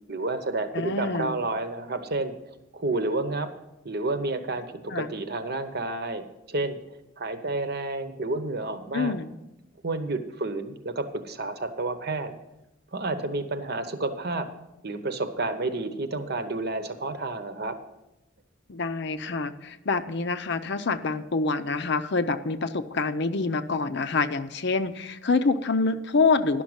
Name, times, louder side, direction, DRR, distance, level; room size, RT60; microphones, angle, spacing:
voice 1, 0.1-3.5 3.8-6.8 7.2-9.2 9.8-12.4 12.9-14.5 14.8-17.8, right 2 dB, 55° right, 9 dB, 1.0 m, -30 dB
voice 2, 0.7-1.3 4.9-5.1 8.9-9.3 18.7-26.6, left 4 dB, 60° left, 11 dB, 0.6 m, -26 dB
11.0 x 6.1 x 8.0 m, 0.90 s
head